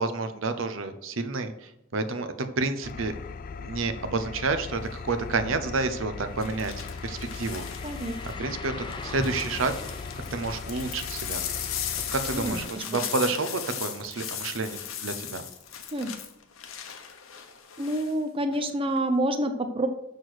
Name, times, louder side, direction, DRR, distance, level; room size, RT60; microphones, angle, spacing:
voice 1, 0.0-3.1 3.6-7.6 8.2-9.7 10.3-11.4 12.1-15.4, right 3 dB, 70° right, 9 dB, 0.8 m, -30 dB
Engine, 2.8-12.7, left 5 dB, 45° left, 0.3 m, -39 dB
sound 1, 4.8-5.1 6.4-8.3 8.9-18.1 18.5-19.0, left 9 dB, 80° left, 1.0 m, -37 dB
sound 2, 6.0-15.6 16.0-16.1 18.9-19.0, left 2 dB, 25° left, 0.7 m, -44 dB
voice 2, 7.8-8.2 12.3-13.0 15.9-16.1 17.8-19.9, right 1 dB, 25° right, 7 dB, 0.6 m, -28 dB
6.6 x 6.4 x 6.3 m, 0.85 s
head